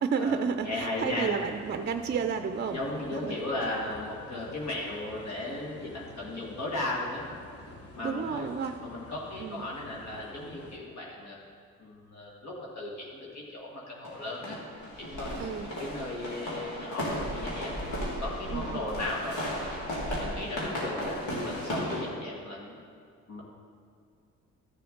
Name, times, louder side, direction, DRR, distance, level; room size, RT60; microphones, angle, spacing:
voice 1, 0.0-2.8 3.1-3.4 8.0-8.8 9.4-9.6 15.4-15.7 18.5-18.9, right 6 dB, 35° right, 8 dB, 0.4 m, -31 dB
voice 2, 0.6-1.3 2.7-7.3 7.9-8.5 8.8-11.4 11.8-17.7 18.2-19.8 20.2-22.8 23.3-23.4, left 2 dB, 65° left, -3 dB, 1.9 m, -36 dB
sound 1, 0.6-10.8, left 2 dB, 50° left, 1.3 m, -49 dB
sound 2, 14.0-22.0, equal, 90° left, 2.6 m, -35 dB
13.0 x 6.8 x 3.9 m, 2.2 s
cardioid pair, 90°, 30 cm